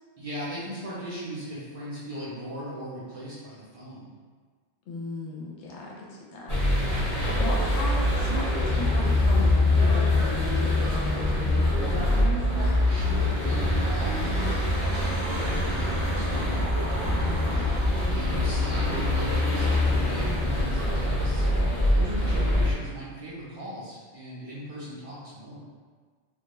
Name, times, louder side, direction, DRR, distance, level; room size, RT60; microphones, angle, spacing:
voice 1, 0.2-4.0 12.9-16.6 17.4-25.6, right 1 dB, 45° right, -9 dB, 0.5 m, -38 dB
voice 2, 4.9-6.5 6.9-12.8 17.2-17.7 22.2-22.4, left 2 dB, 85° left, -3 dB, 0.9 m, -36 dB
sound 1, 6.5-22.7, left 1 dB, 40° left, 0.9 m, -24 dB
2.2 x 2.2 x 2.9 m, 1.5 s
omnidirectional pair, 1.1 m